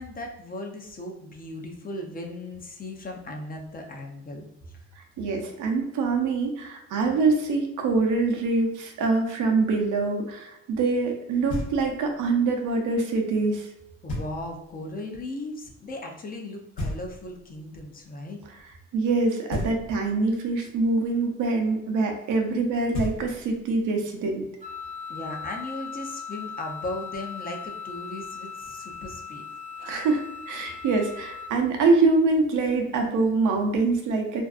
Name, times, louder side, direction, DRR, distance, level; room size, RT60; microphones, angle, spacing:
voice 1, 0.0-4.4 4.7-4.9 14.0-18.4 25.1-29.4, left 1 dB, 30° left, 2 dB, 0.5 m, -37 dB
voice 2, 5.2-13.7 18.9-24.5 29.8-30.2 30.5-34.4, right 3 dB, 85° right, 2 dB, 0.6 m, -24 dB
Knock, 11.5-12.2 14.1-14.7 16.8-17.6 19.5-20.3 22.6-22.7 22.9-23.7, left 1 dB, 70° left, 1.0 m, -34 dB
Wind instrument woodwind instrument, 24.6-31.5, left 6 dB, 25° right, 0.4 m, -38 dB
2.5 x 2.3 x 2.4 m, 0.86 s
cardioid pair, 90°, 30 cm